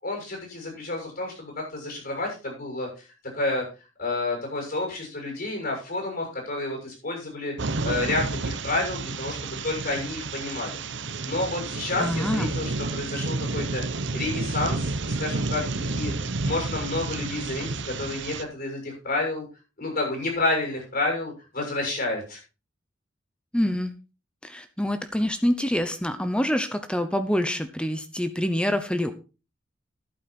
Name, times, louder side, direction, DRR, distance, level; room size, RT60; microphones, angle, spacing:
voice 1, 0.0-3.0 3.3-3.7 4.0-7.5 7.8-10.8 11.2-13.8 14.1-16.1 16.4-19.4 19.8-22.4, left 2 dB, 55° left, 0 dB, 6.8 m, -30 dB
sound 1, 7.6-18.4, right 3 dB, 70° right, 0.9 m, -30 dB
voice 2, 12.0-12.5 23.5-23.9 24.4-29.1, equal, 5° left, 9 dB, 0.9 m, -26 dB
11.5 x 9.1 x 4.4 m, 0.32 s
head